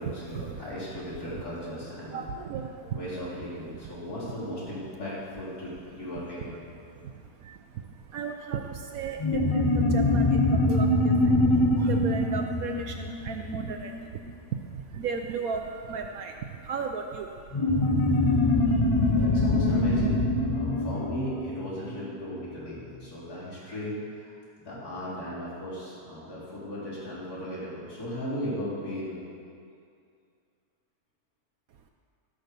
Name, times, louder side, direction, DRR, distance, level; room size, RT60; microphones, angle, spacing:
voice 1, 0.0-2.2 2.9-6.6 18.5-24.4 24.6-29.2, equal, 85° left, -10 dB, 4.5 m, -37 dB
voice 2, 2.1-3.0 7.0-7.1 7.4-14.0 14.7-18.3 18.9-19.2, right 6 dB, 70° right, 4 dB, 1.1 m, -35 dB
sound 1, 9.2-14.2 17.5-22.4, left 2 dB, 35° left, 0.5 m, -24 dB
16.0 x 6.5 x 6.8 m, 2.4 s
omnidirectional pair, 1.6 m